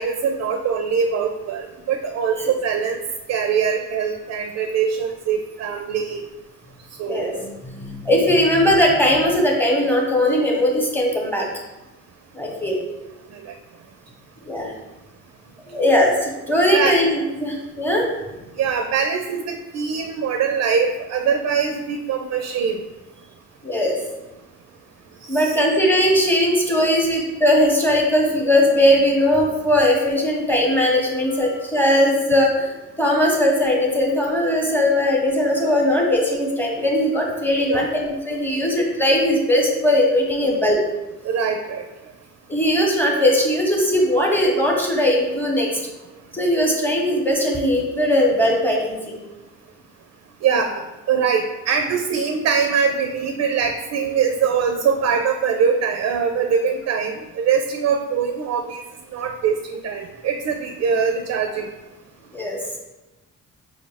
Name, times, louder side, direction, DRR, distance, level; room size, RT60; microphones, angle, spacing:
voice 1, 0.0-3.0 3.3-6.2 7.0-7.3 13.3-13.5 16.7-17.0 18.6-22.8 25.3-25.6 37.7-37.9 40.4-40.5 41.2-41.8 50.4-58.8 59.1-61.7, right 6 dB, 60° right, 5 dB, 0.4 m, -22 dB
voice 2, 7.1-11.5 12.3-12.8 14.5-14.7 15.7-18.1 23.6-24.0 25.3-40.8 42.5-45.8 46.3-49.2 62.3-62.6, left 1 dB, 5° left, -1 dB, 0.9 m, -19 dB
4.8 x 2.0 x 3.4 m, 1.1 s
cardioid pair, 90°, 30 cm